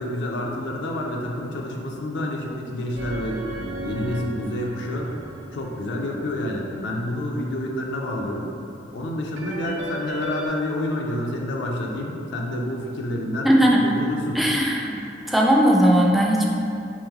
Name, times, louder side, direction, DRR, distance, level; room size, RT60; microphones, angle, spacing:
voice 1, 0.0-3.4 3.8-5.1 5.5-8.5 8.9-13.5 13.8-14.4, left 1 dB, 70° left, 0 dB, 0.4 m, -28 dB
sound 1, 3.0-7.0 9.4-10.5, right 2 dB, 90° right, 0.4 m, -35 dB
voice 2, 13.4-13.8 14.3-15.0 15.3-16.5, equal, ahead, -2 dB, 0.3 m, -18 dB
3.1 x 2.9 x 3.5 m, 2.6 s
head